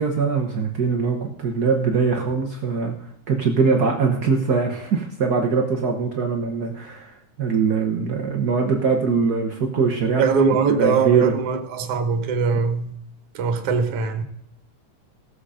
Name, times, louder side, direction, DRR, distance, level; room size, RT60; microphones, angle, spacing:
voice 1, 0.0-3.0 3.3-10.2 10.8-11.3, right 5 dB, 80° right, 0.8 m, -22 dB
voice 2, 10.2-13.0 13.3-14.2, right 5 dB, 60° right, 1.9 m, -21 dB
16.5 x 7.0 x 5.0 m
omnidirectional pair, 3.4 m